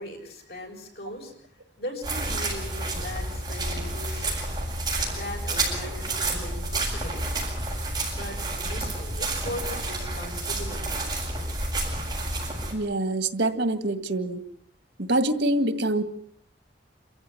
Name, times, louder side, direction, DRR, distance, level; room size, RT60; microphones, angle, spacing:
voice 1, 0.0-1.5 1.8-4.5 5.1-7.3 8.2-11.0, left 1 dB, 60° left, 1 dB, 7.5 m, -39 dB
sound 1, 2.0-12.7, right 2 dB, 20° right, 7.8 m, -30 dB
voice 2, 12.7-14.4 15.0-16.0, right 1 dB, 85° right, 10 dB, 2.0 m, -25 dB
28.0 x 15.0 x 9.8 m, 0.67 s
head